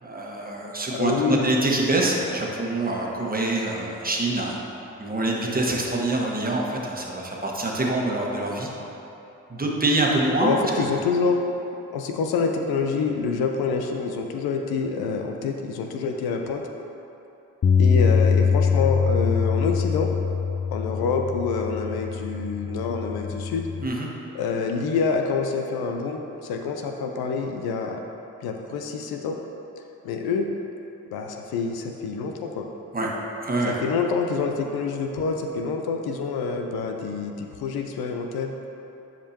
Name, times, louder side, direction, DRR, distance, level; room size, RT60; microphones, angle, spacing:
voice 1, 0.0-4.6 5.0-8.7 9.5-10.5 23.8-24.1 32.9-33.1 33.4-33.8, right 2 dB, 20° right, -2 dB, 1.4 m, -25 dB
voice 2, 0.9-1.5 10.4-11.4 11.9-16.6 17.8-20.1 20.7-23.6 24.3-28.0 28.4-29.4 30.0-30.5 31.1-32.7 33.8-38.5, left 5 dB, 70° left, 3 dB, 0.7 m, -27 dB
Bass guitar, 17.6-23.9, left 6 dB, 25° left, 0.3 m, -23 dB
10.0 x 5.1 x 2.9 m, 3.0 s
hypercardioid pair, 40°, 39 cm